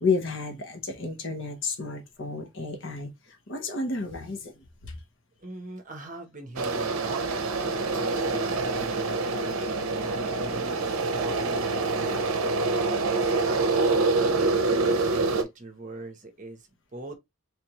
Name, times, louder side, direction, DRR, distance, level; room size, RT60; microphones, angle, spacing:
voice 1, 0.0-4.9, left 4 dB, 60° left, 1.0 m, -31 dB
voice 2, 5.4-12.5 13.2-17.2, right 2 dB, 35° right, 0.8 m, -41 dB
sound 1, 6.6-15.4, right 3 dB, 70° right, 0.6 m, -26 dB
3.3 x 3.3 x 2.9 m
head